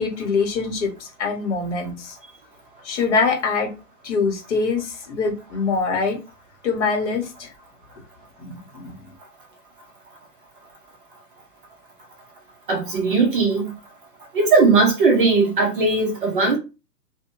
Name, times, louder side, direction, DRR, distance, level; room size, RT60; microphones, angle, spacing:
voice 1, 0.0-2.2 2.8-3.7 4.0-6.2 6.6-7.5 8.4-9.1, left 4 dB, 45° left, 0.9 m, -24 dB
voice 2, 12.7-13.7 14.3-16.6, right 4 dB, 35° right, 0.6 m, -18 dB
2.6 x 2.1 x 2.9 m
hypercardioid pair, 150°, 49 cm